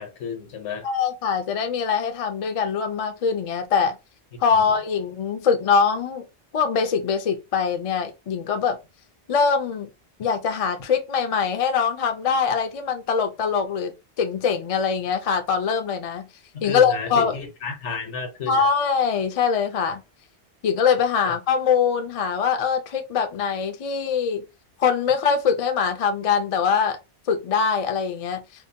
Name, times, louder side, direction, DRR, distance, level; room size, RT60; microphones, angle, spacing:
voice 1, 0.0-0.9 4.3-4.8 16.5-18.7 21.2-21.3, left 5 dB, 80° left, 1.1 m, -33 dB
voice 2, 0.8-4.0 4.4-6.3 6.5-8.8 9.3-9.9 10.2-13.9 14.2-16.3 16.6-17.3 18.5-20.0 20.6-24.4 24.8-27.0 27.3-28.4, left 6 dB, 55° left, 0.4 m, -23 dB
2.7 x 2.1 x 2.6 m
omnidirectional pair, 1.2 m